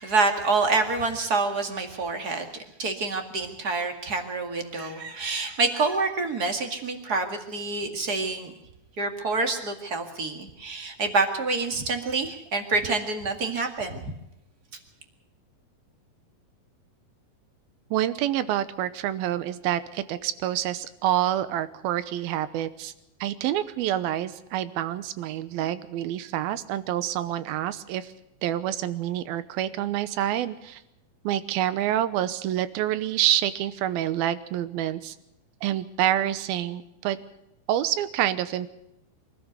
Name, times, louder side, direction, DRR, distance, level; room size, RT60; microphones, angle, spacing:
voice 1, 0.0-8.5 9.0-14.1, right 3 dB, 35° right, 5 dB, 1.9 m, -27 dB
voice 2, 17.9-22.9 23.2-28.1 28.4-30.8 31.2-35.2 35.6-37.2 37.7-38.7, right 12 dB, 85° right, 14 dB, 2.8 m, -27 dB
24.0 x 13.5 x 8.0 m, 0.87 s
omnidirectional pair, 4.3 m